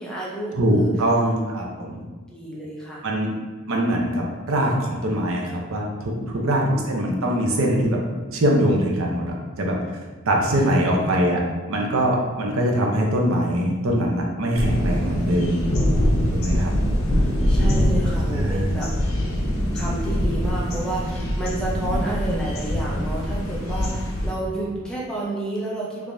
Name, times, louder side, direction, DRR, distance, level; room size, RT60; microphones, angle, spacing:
voice 1, 0.0-0.9 2.3-3.0 6.1-6.7 10.0-10.3 10.7-11.2 16.3-18.9 19.7-26.1, right 2 dB, 5° left, -6 dB, 0.5 m, -31 dB
voice 2, 0.5-2.0 3.0-3.3 3.7-8.0 8.3-9.3 9.6-9.8 10.3-15.7 16.3-16.7 18.2-18.8 21.7-21.9, right 1 dB, 70° right, 0 dB, 0.6 m, -22 dB
sound 1, 14.6-24.3, equal, 75° left, 0.7 m, -23 dB
3.4 x 3.3 x 2.6 m, 1.3 s
head